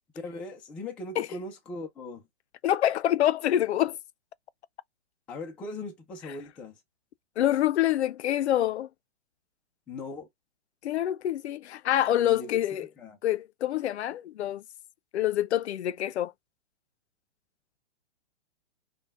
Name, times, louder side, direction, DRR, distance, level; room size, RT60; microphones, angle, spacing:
voice 1, 0.1-2.3 5.3-6.8 9.9-10.3 12.1-12.6 13.0-13.2, left 2 dB, 5° left, 0.3 m, -39 dB
voice 2, 2.6-4.0 7.4-8.9 10.8-12.9 13.2-14.6 15.1-16.3, left 12 dB, 70° left, 0.5 m, -26 dB
5.2 x 2.3 x 3.5 m
hypercardioid pair, 135°, 35 cm